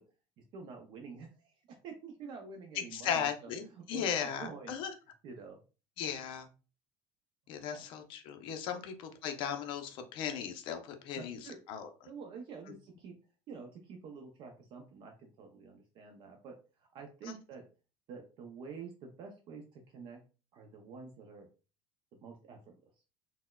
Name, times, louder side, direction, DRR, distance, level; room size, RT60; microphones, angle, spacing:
voice 1, 0.5-1.5 1.8-4.1 4.4-4.7 5.2-5.6 7.7-7.8 8.7-8.8 11.2-11.6 12.1-13.2 13.5-17.7 18.1-20.2 20.5-21.5 22.2-22.7, right 5 dB, 45° right, 3 dB, 0.4 m, -48 dB
voice 2, 2.7-4.9 6.0-6.5 7.5-8.9 9.2-11.4 11.7-11.9 17.3-17.4, left 8 dB, 50° left, 7 dB, 0.5 m, -36 dB
4.1 x 2.1 x 2.2 m, 0.34 s
cardioid pair, 175°, 11 cm